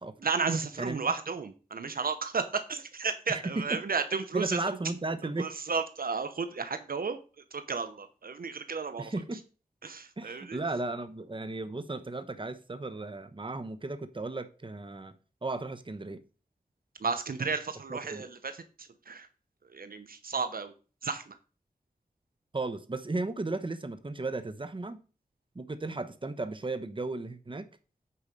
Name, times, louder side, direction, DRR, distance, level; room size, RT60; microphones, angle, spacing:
voice 1, 0.2-4.9 5.4-9.1 9.8-10.6 17.0-19.3 19.6-20.7 21.0-21.4, right 5 dB, 75° right, 0.8 m, -33 dB
voice 2, 3.3-3.8 4.3-5.5 9.0-9.4 10.2-15.1 15.4-16.2 17.9-18.3 22.5-25.0 25.5-27.7, right 2 dB, 35° right, 1.0 m, -35 dB
8.6 x 4.7 x 5.3 m
cardioid pair, 45°, 15 cm